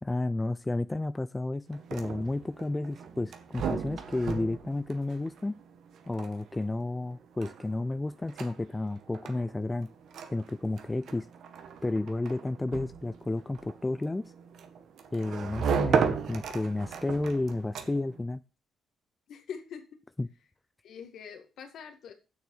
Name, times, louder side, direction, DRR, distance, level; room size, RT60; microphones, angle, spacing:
voice 1, 0.0-5.6 6.1-9.9 10.3-11.3 11.8-14.3 15.1-18.4 20.2-20.3, left 2 dB, 15° left, 13 dB, 0.4 m, -32 dB
sound 1, 1.7-18.2, right 6 dB, 70° right, 1.5 m, -36 dB
voice 2, 19.3-20.0 20.8-22.1, left 7 dB, 70° left, 7 dB, 2.0 m, -44 dB
7.8 x 6.6 x 7.0 m, 0.32 s
cardioid pair, 90°, 0 cm